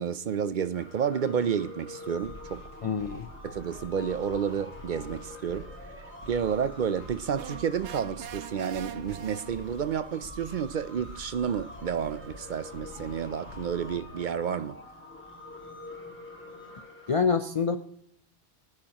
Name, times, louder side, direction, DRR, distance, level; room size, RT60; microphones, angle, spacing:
voice 1, 0.0-2.9 3.4-5.7 6.3-14.8, right 7 dB, 55° right, 0.6 m, -30 dB
sound 1, 0.7-17.2, left 1 dB, 10° left, 2.4 m, -46 dB
sound 2, 2.2-14.2, left 1 dB, 85° left, 3.0 m, -48 dB
voice 2, 2.8-3.3 17.1-17.8, left 5 dB, 40° left, 0.5 m, -26 dB
sound 3, 7.3-10.0, right 10 dB, 75° right, 0.9 m, -43 dB
23.5 x 9.6 x 2.9 m
omnidirectional pair, 1.2 m